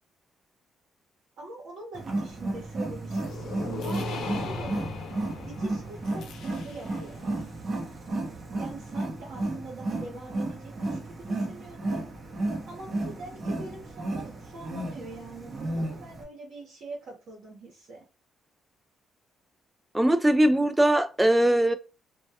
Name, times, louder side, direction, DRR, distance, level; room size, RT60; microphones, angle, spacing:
voice 1, 1.4-4.9 5.4-7.4 8.6-12.0 12.7-18.0, right 3 dB, 65° right, 0.9 m, -43 dB
Wild animals, 1.9-16.2, right 2 dB, 35° right, 0.7 m, -33 dB
sound 1, 3.1-7.1, left 5 dB, 75° left, 0.4 m, -39 dB
voice 2, 19.9-21.7, right 1 dB, 10° right, 0.3 m, -21 dB
2.2 x 2.1 x 2.7 m
cardioid pair, 90°, 0 cm